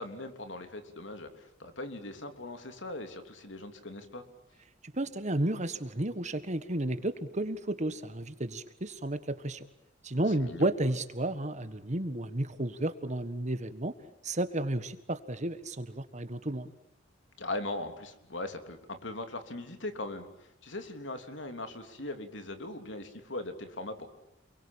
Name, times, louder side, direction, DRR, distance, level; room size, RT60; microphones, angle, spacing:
voice 1, 0.0-4.2 10.4-10.7 17.4-24.1, left 2 dB, 75° left, 7 dB, 3.4 m, -40 dB
voice 2, 4.9-9.7 10.0-13.9 14.2-16.7, right 1 dB, 40° right, 11 dB, 1.6 m, -32 dB
29.0 x 22.5 x 8.9 m, 0.82 s
head